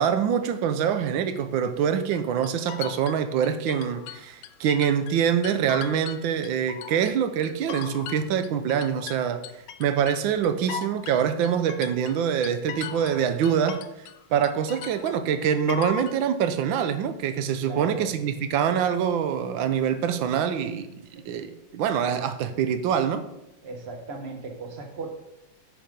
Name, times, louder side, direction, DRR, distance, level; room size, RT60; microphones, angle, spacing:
voice 1, 0.0-9.4 9.8-13.8 14.3-20.9 21.1-23.2, right 8 dB, 90° right, 10 dB, 1.4 m, -25 dB
sound 1, 2.1-5.2 5.4-7.1 7.4-14.2 14.4-16.2, left 9 dB, 75° left, 1.3 m, -38 dB
voice 2, 17.6-18.1 21.1-21.2 23.6-25.1, right 3 dB, 35° right, 3 dB, 1.4 m, -36 dB
9.8 x 5.1 x 5.2 m, 0.87 s
omnidirectional pair, 2.1 m